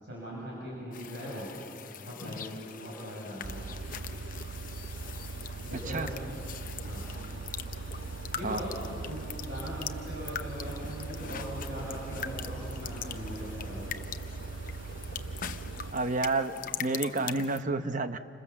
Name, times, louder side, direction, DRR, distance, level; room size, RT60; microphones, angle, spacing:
voice 1, 0.0-1.5 2.0-3.6 5.6-6.1 6.8-7.2 8.3-8.7 9.0-13.9, equal, 60° right, -5 dB, 6.7 m, -40 dB
sound 1, 0.9-17.6, left 7 dB, 45° left, 0.8 m, -42 dB
sound 2, 3.4-15.9, right 3 dB, 85° right, 0.8 m, -40 dB
voice 2, 15.9-16.5 16.8-18.2, right 3 dB, 45° right, 10 dB, 0.9 m, -29 dB
29.0 x 26.5 x 7.2 m, 2.4 s
head